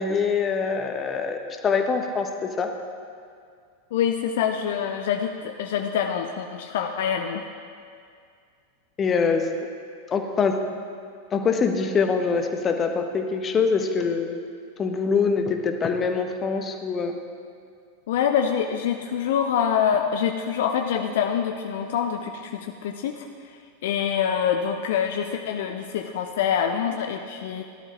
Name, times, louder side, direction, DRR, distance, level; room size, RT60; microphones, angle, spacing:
voice 1, 0.0-2.7 9.0-9.5 10.1-10.6 11.3-14.4 14.8-17.2, left 5 dB, 25° left, 5 dB, 1.0 m, -24 dB
voice 2, 3.9-7.5 18.1-27.6, left 8 dB, 55° left, 5 dB, 0.6 m, -25 dB
17.5 x 11.5 x 3.0 m, 2.2 s
figure-of-eight pair, 90°, 0 cm